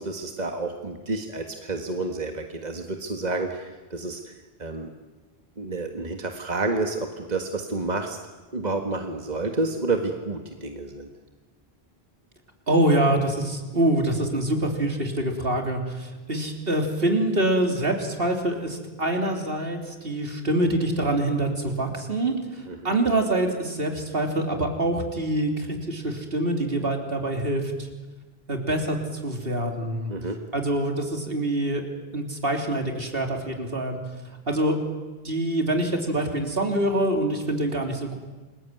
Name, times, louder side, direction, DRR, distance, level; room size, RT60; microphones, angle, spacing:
voice 1, 0.0-4.3 4.6-4.9 5.6-8.2 8.5-11.1 22.7-22.9 30.1-30.4, right 3 dB, 45° right, 4 dB, 1.9 m, -29 dB
voice 2, 12.7-27.9 28.5-30.1 30.5-31.8 32.1-34.0 34.5-34.8 35.2-38.2, right 1 dB, 65° right, 3 dB, 3.7 m, -25 dB
29.0 x 21.5 x 9.4 m, 1.2 s
omnidirectional pair, 1.0 m